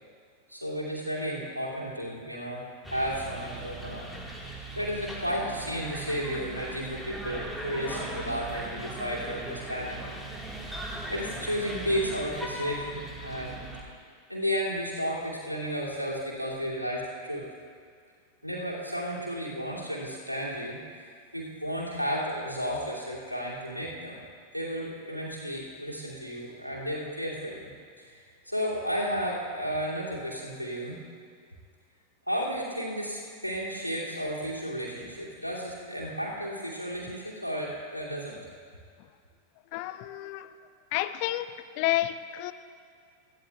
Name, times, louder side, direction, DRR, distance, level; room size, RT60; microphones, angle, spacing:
voice 1, 0.5-4.0 4.4-10.0 10.6-13.6 14.3-17.4 18.4-24.2 24.5-27.7 28.0-31.0 32.3-38.4, equal, 90° right, -5 dB, 2.5 m, -33 dB
sound 1, 2.8-13.8, right 1 dB, ahead, 1.6 m, -39 dB
voice 2, 39.7-40.5 40.9-41.5 41.8-42.5, left 15 dB, 45° left, 12 dB, 0.5 m, -30 dB
20.5 x 14.0 x 2.3 m, 2.1 s
figure-of-eight pair, 90°, 0 cm